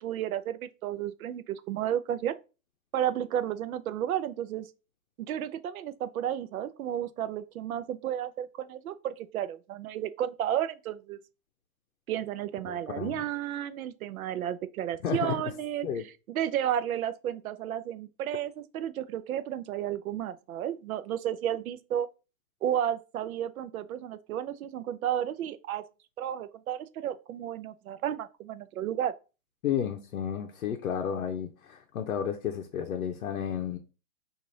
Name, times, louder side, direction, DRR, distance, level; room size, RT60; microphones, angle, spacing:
voice 1, 0.0-2.4 2.9-4.7 5.2-11.2 12.1-22.1 22.6-25.8 26.2-29.1, right 10 dB, 85° right, 0.5 m, -32 dB
voice 2, 12.7-13.2 15.0-15.4 15.8-16.0 29.6-33.8, left 8 dB, 70° left, 0.7 m, -32 dB
3.2 x 2.5 x 3.8 m
hypercardioid pair, 170°, 42 cm